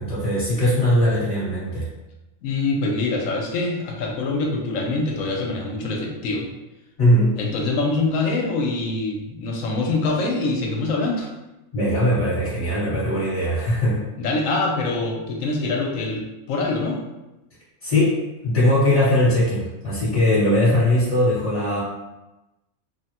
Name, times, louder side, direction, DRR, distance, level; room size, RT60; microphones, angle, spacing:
voice 1, 0.0-1.8 7.0-7.3 11.7-14.0 17.8-18.2 18.4-21.8, left 1 dB, 25° left, -12 dB, 1.1 m, -20 dB
voice 2, 2.4-6.5 7.4-11.3 14.2-17.0, left 3 dB, 75° left, 1 dB, 0.9 m, -24 dB
3.2 x 2.1 x 2.8 m, 1.0 s
omnidirectional pair, 1.5 m